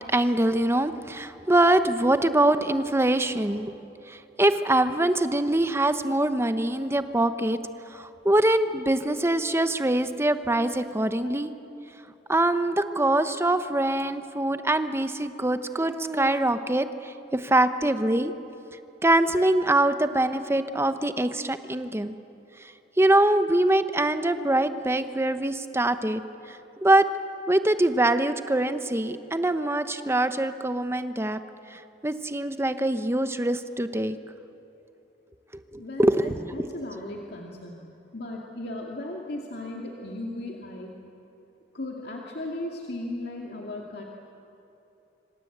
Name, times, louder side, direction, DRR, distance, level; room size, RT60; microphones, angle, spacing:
voice 1, 0.1-3.7 4.1-7.6 7.9-11.5 12.3-18.3 19.0-22.2 23.0-26.2 26.5-27.0 27.5-31.4 31.7-34.2 35.5-36.6, right 1 dB, 15° right, 10 dB, 1.0 m, -24 dB
voice 2, 35.8-37.8 38.1-41.0 41.7-44.0, left 1 dB, 65° left, -1 dB, 2.5 m, -36 dB
26.5 x 26.0 x 8.1 m, 2.9 s
head